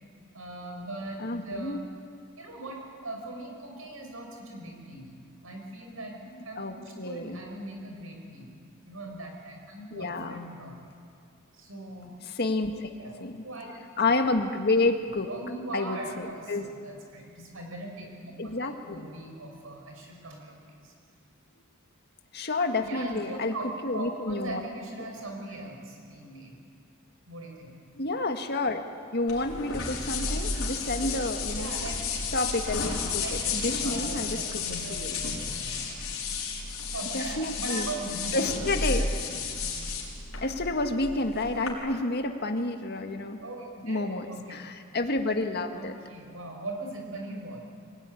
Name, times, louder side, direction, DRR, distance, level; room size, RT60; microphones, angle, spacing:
voice 1, 0.3-1.9 2.4-5.1 5.4-6.2 6.4-8.6 8.9-10.9 11.5-12.1 13.0-13.8 15.3-20.9 22.8-26.6 27.3-27.7 31.5-32.0 33.2-35.9 36.9-38.5 43.4-44.6 45.7-47.6, right 2 dB, 75° right, 2 dB, 5.7 m, -40 dB
voice 2, 1.2-1.8 6.4-7.4 9.9-10.4 12.3-12.9 13.2-13.4 14.0-15.3 15.7-16.7 18.4-19.1 22.3-23.5 23.8-24.6 27.9-28.8 29.1-31.7 32.3-34.6 34.9-35.1 37.1-37.9 38.3-39.1 40.4-43.4 43.8-46.0, left 2 dB, 50° left, 5 dB, 1.8 m, -29 dB
sound 1, 29.3-41.7, left 4 dB, 75° left, 5.3 m, -32 dB
24.5 x 18.0 x 10.0 m, 2.4 s
head